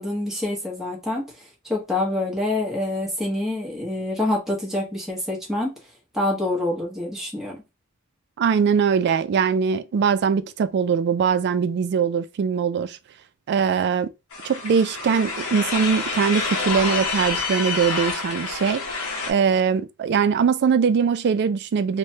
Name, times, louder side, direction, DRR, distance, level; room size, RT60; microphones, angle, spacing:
voice 1, 0.0-5.7 6.1-7.6, left 2 dB, ahead, 0.9 m, -26 dB
voice 2, 8.4-13.0 13.5-14.1 14.4-18.8 19.3-22.0, right 6 dB, 50° right, 0.3 m, -21 dB
sound 1, 14.3-19.3, left 4 dB, 85° left, 0.8 m, -28 dB
3.2 x 2.1 x 2.7 m
head